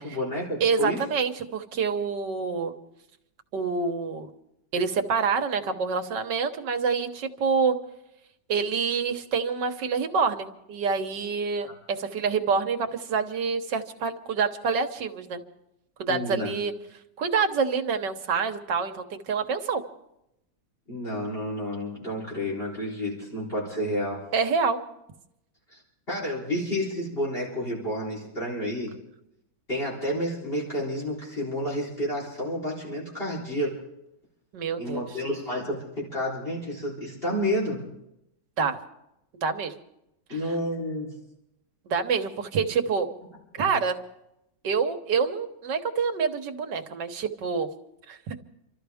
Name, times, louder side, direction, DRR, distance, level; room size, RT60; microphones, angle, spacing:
voice 1, 0.0-1.0 16.1-16.5 20.9-24.2 25.7-25.8 26.1-28.9 29.7-33.8 34.8-37.9 40.3-41.2 43.6-43.7, equal, 35° left, -4 dB, 4.2 m, -30 dB
voice 2, 0.6-2.7 3.5-4.3 4.7-7.8 8.5-15.4 16.0-16.7 17.2-19.8 24.3-24.8 34.5-35.1 38.6-38.8 39.3-39.7 40.3-40.4 41.9-43.1 43.6-44.0 44.6-47.7 48.1-48.2, right 5 dB, 80° right, 6 dB, 1.8 m, -27 dB
28.0 x 13.5 x 3.5 m, 0.84 s
omnidirectional pair, 1.9 m